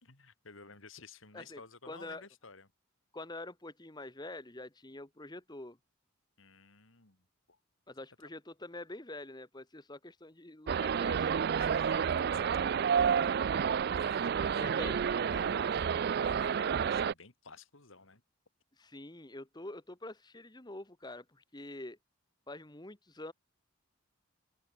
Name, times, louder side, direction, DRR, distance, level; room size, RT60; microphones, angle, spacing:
voice 1, 0.0-2.7 6.4-7.6 11.6-13.3 13.9-18.2, left 4 dB, 65° left, 2.9 m, -53 dB
voice 2, 1.8-2.2 3.1-5.8 7.9-11.4 14.6-15.0 18.8-22.0 22.5-23.3, left 2 dB, 20° left, 1.3 m, -46 dB
sound 1, 10.7-17.1, right 7 dB, 45° right, 0.3 m, -30 dB
open air
head